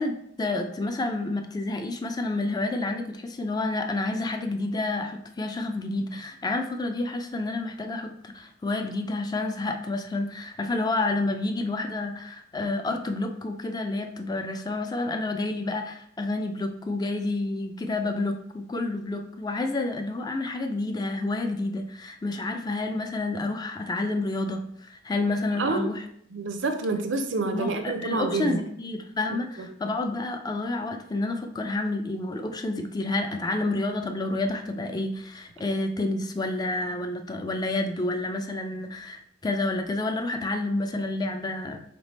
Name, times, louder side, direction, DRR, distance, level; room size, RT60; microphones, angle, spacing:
voice 1, 0.0-26.0 27.5-41.8, left 2 dB, 20° left, 5 dB, 0.4 m, -29 dB
voice 2, 25.5-25.9 26.3-28.6 29.6-29.7, right 3 dB, 70° right, 7 dB, 0.5 m, -28 dB
3.3 x 3.2 x 4.1 m, 0.69 s
head